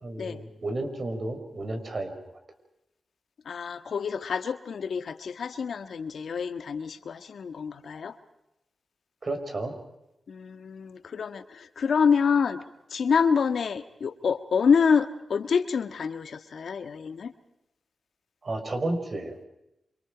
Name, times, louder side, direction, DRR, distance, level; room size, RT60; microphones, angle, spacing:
voice 1, 0.0-2.1 9.2-9.8 18.4-19.5, right 2 dB, 50° right, 6 dB, 5.3 m, -32 dB
voice 2, 3.4-8.2 10.3-12.6 12.9-17.3, left 6 dB, 75° left, 9 dB, 1.5 m, -27 dB
28.0 x 25.5 x 5.1 m, 0.88 s
cardioid pair, 70°, 0 cm